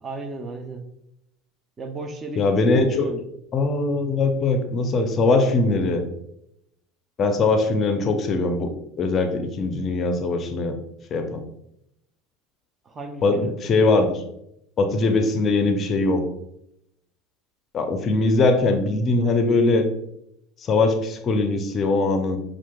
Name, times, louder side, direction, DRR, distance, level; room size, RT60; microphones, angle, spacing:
voice 1, 0.0-0.9 1.8-3.2 12.8-13.6, right 2 dB, 25° right, 5 dB, 0.5 m, -34 dB
voice 2, 2.4-3.1 3.5-6.0 7.2-8.7 9.0-10.7 11.1-11.4 13.2-14.2 14.8-16.2 17.7-19.9 20.7-22.4, left 3 dB, 35° left, 6 dB, 0.5 m, -21 dB
5.6 x 2.5 x 2.2 m, 0.79 s
figure-of-eight pair, 70°, 0 cm